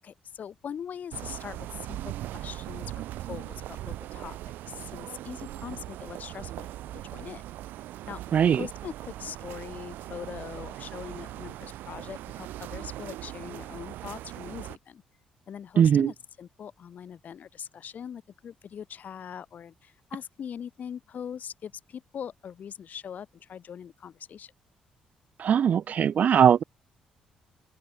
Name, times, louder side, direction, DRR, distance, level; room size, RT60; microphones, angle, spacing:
voice 1, 0.0-7.4 8.1-8.2 8.5-15.0 15.5-24.5, left 8 dB, 55° left, 7.9 m, -41 dB
sound 1, 1.1-14.8, right 14 dB, 70° right, 2.8 m, -40 dB
voice 2, 15.8-16.1 25.4-26.6, right 8 dB, 50° right, 0.3 m, -20 dB
open air
hypercardioid pair, 45°, 3 cm